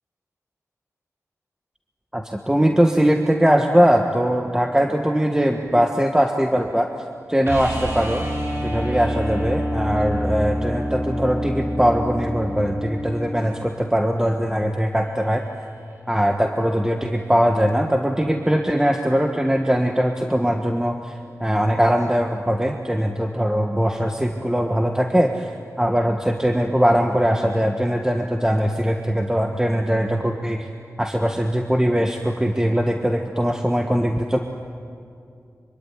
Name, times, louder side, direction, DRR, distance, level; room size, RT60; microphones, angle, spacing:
voice 1, 2.1-6.9 7.3-8.3 8.6-15.4 16.1-30.7 31.0-34.4, equal, 10° right, 4 dB, 1.5 m, -21 dB
sound 1, 7.4-13.4 15.9-16.0, equal, 45° right, 7.8 m, -27 dB
25.0 x 24.0 x 9.7 m, 2.5 s
cardioid pair, 55°, 6 cm